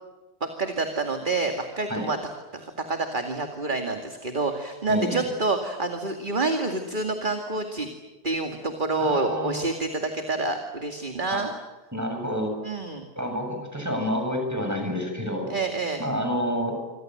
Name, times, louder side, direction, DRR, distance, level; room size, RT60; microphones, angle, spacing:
voice 1, 0.4-2.2 2.5-7.9 8.2-11.5 12.6-13.0 15.5-16.0, right 3 dB, 30° right, 5 dB, 2.3 m, -28 dB
voice 2, 4.9-5.2 9.0-9.6 11.3-11.4 11.9-12.5 13.2-15.5 16.0-16.8, equal, 10° right, 3 dB, 7.5 m, -28 dB
27.0 x 26.5 x 7.8 m, 1.2 s
omnidirectional pair, 1.7 m